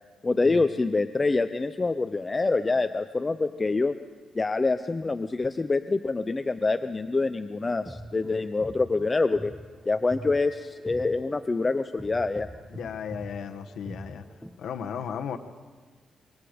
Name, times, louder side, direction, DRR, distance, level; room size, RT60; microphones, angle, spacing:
voice 1, 0.2-4.0 4.3-9.5 9.9-12.5, left 3 dB, 20° left, 9 dB, 0.6 m, -26 dB
sound 1, 7.7-14.7, equal, ahead, 0.8 m, -43 dB
voice 2, 12.7-14.2 14.6-15.4, left 7 dB, 75° left, 6 dB, 1.1 m, -35 dB
26.0 x 24.0 x 5.1 m, 1.4 s
cardioid pair, 140°, 0 cm